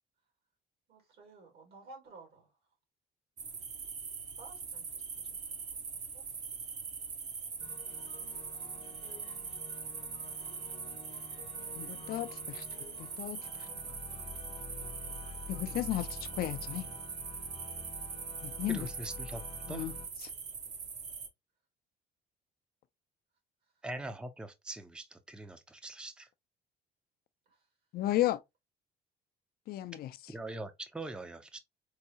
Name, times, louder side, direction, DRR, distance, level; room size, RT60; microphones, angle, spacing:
voice 1, 0.9-2.5 4.4-6.2 27.5-27.6, right 3 dB, 70° right, 1.9 m, -55 dB
sound 1, 3.4-21.3, right 5 dB, 45° right, 0.7 m, -42 dB
sound 2, 7.6-20.1, left 4 dB, 35° left, 0.7 m, -49 dB
voice 2, 11.7-12.6 13.0-13.7 15.5-16.9 18.4-18.9 19.7-19.9 20.2-20.3 27.9-28.4 29.7-30.1, left 14 dB, 65° left, 0.4 m, -34 dB
voice 3, 18.7-19.4 19.7-19.9 23.8-26.3 30.3-31.6, right 2 dB, 5° right, 0.5 m, -42 dB
4.6 x 2.0 x 2.7 m
cardioid pair, 110°, 17 cm